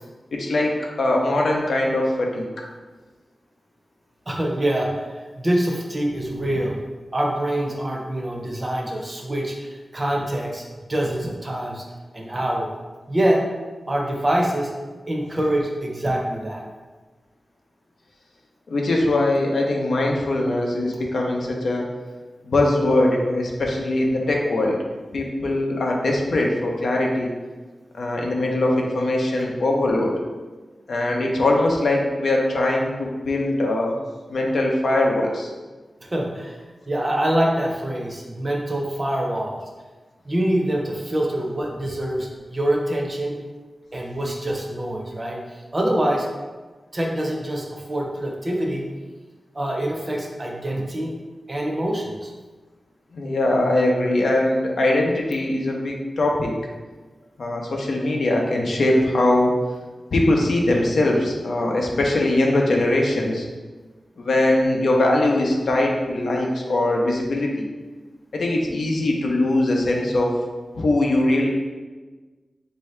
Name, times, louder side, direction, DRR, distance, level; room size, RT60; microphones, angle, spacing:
voice 1, 0.3-2.5 18.7-21.9 22.4-24.8 25.1-27.3 27.9-30.1 30.9-33.9 34.3-35.5 53.1-56.5 57.4-59.5 60.1-63.4 64.2-67.7 68.3-70.3 70.8-71.5, left 1 dB, 75° left, 0 dB, 0.6 m, -21 dB
voice 2, 4.3-6.8 7.1-10.6 10.9-11.8 12.1-12.7 13.1-13.4 13.9-14.7 15.1-16.6 36.0-39.6 40.3-43.4 43.9-46.3 46.9-48.9 49.5-51.1 51.5-52.3, right 1 dB, 25° right, 0 dB, 0.6 m, -25 dB
4.4 x 2.7 x 3.2 m, 1.3 s
wide cardioid pair, 125°, 0 cm